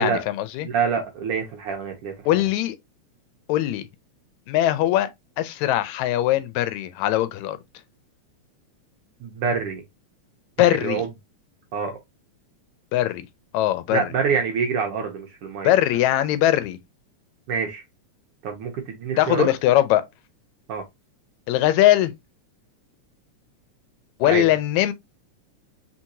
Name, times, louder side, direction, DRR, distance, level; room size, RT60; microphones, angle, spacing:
voice 1, 0.0-0.7 2.3-2.8 3.5-3.8 4.5-5.1 5.4-7.6 10.6-11.0 12.9-13.2 13.5-14.0 15.6-16.8 19.2-20.0 21.5-22.1 24.2-24.9, left 13 dB, 80° left, 1.9 m, -20 dB
voice 2, 0.6-2.1 9.2-9.8 10.6-11.1 11.7-12.0 13.9-15.7 17.5-17.8 18.4-19.5 20.7-20.8 24.2-24.5, right 6 dB, 70° right, 1.4 m, -26 dB
4.6 x 3.9 x 2.6 m
omnidirectional pair, 3.3 m